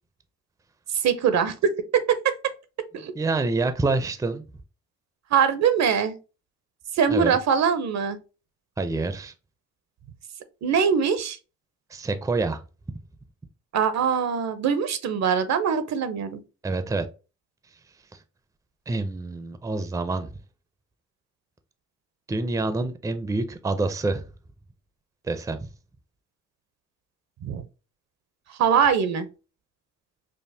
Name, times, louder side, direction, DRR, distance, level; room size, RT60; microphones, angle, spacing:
voice 1, 0.9-1.5 1.9-2.5 2.9-3.1 5.3-6.2 6.9-8.2 10.6-11.4 13.7-16.4 27.4-27.6 28.5-29.3, right 7 dB, 65° right, 0.7 m, -22 dB
voice 2, 3.0-4.4 7.1-7.4 8.8-9.3 11.9-12.6 16.6-17.1 18.1-18.2 18.9-20.3 22.3-24.2 25.2-25.6, right 3 dB, 10° right, 0.5 m, -27 dB
5.3 x 2.0 x 2.7 m
cardioid pair, 90°, 30 cm